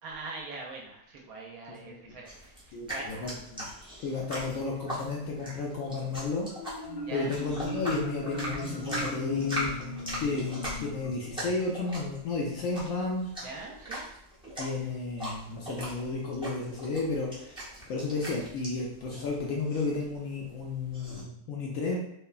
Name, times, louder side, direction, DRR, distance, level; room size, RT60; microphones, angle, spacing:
voice 1, 0.0-3.3 7.1-7.3 13.4-14.1 14.7-14.9 17.7-17.9, right 3 dB, 70° right, -1 dB, 1.0 m, -43 dB
sound 1, 2.2-21.2, equal, 10° right, 0.3 m, -40 dB
voice 2, 2.7-3.7 4.0-6.5 7.1-9.7 10.2-13.3 14.6-17.6 17.9-22.0, left 3 dB, 70° left, -2 dB, 0.8 m, -32 dB
Marimba xylophone, 6.5-12.0, left 1 dB, 85° left, 1.3 m, -39 dB
3.0 x 2.1 x 2.3 m, 0.75 s
omnidirectional pair, 1.7 m